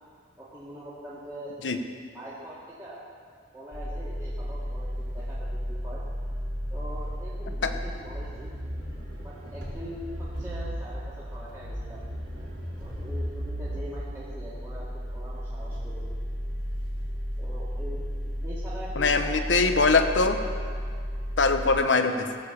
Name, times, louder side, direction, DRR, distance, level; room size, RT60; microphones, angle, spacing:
voice 1, 0.4-1.5 2.1-3.0 3.5-6.0 6.7-8.5 9.2-12.0 12.8-14.9 15.1-16.1 17.4-18.0 18.4-19.5 22.0-22.2, equal, 15° right, -9 dB, 2.0 m, -42 dB
sound 1, 3.7-21.8, equal, 65° right, 4.0 m, -34 dB
voice 2, 19.0-20.4 21.4-22.2, left 4 dB, 80° left, 7 dB, 0.9 m, -22 dB
16.5 x 7.2 x 7.1 m, 2.1 s
head